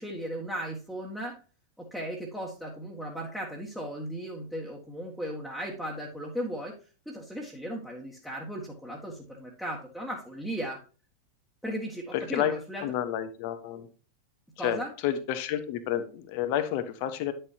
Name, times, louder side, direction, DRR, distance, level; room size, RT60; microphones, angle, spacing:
voice 1, 0.0-1.3 1.8-6.7 7.1-10.8 11.6-12.8 14.6-14.9, equal, ahead, -4 dB, 1.9 m, -36 dB
voice 2, 12.1-12.5 12.8-13.9 14.6-17.3, left 11 dB, 45° left, 10 dB, 1.2 m, -30 dB
10.0 x 6.6 x 2.9 m, 0.36 s
figure-of-eight pair, 90°, 0 cm